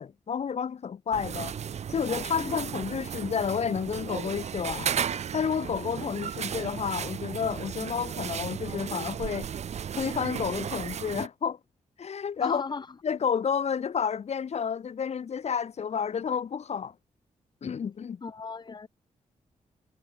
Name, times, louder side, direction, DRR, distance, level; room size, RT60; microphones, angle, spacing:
voice 1, 0.0-1.5 1.9-9.5 9.9-11.6 12.0-12.6 13.0-16.9 17.6-18.2, left 7 dB, 55° left, 2.3 m, -30 dB
sound 1, 1.1-11.3, right 8 dB, 60° right, 0.8 m, -34 dB
voice 2, 12.4-13.0 18.2-18.9, left 4 dB, 35° left, 2.3 m, -36 dB
wide cardioid pair, 120°, 13 cm